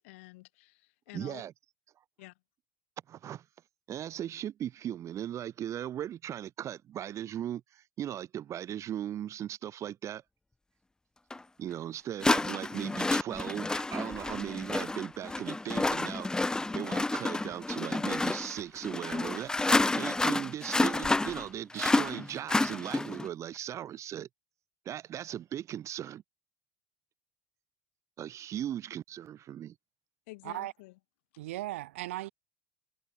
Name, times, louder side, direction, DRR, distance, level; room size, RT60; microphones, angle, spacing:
voice 1, 0.0-1.4 2.2-2.3 30.3-30.9, left 22 dB, 70° left, 4.3 m, -50 dB
voice 2, 1.1-1.5 3.1-3.4 3.9-10.2 11.6-24.3 24.9-26.2 28.2-29.7, right 11 dB, 45° right, 2.1 m, -38 dB
sound 1, 11.3-11.4 12.2-23.3, left 2 dB, 10° left, 0.6 m, -30 dB
voice 3, 31.4-32.3, right 16 dB, 70° right, 0.6 m, -37 dB
figure-of-eight pair, 70°, 7 cm